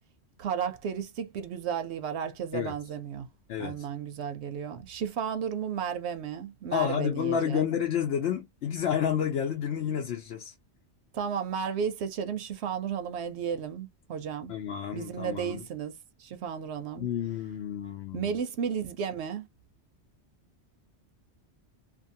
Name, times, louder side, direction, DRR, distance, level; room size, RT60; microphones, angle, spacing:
voice 1, 0.4-3.3 3.6-7.7 11.1-14.5 14.9-15.9 16.2-17.1 18.1-19.5, right 7 dB, 75° right, 0.8 m, -33 dB
voice 2, 3.5-3.8 6.7-10.5 14.5-15.6 17.0-18.4, left 8 dB, 75° left, 0.9 m, -30 dB
2.5 x 2.5 x 2.6 m
omnidirectional pair, 1.2 m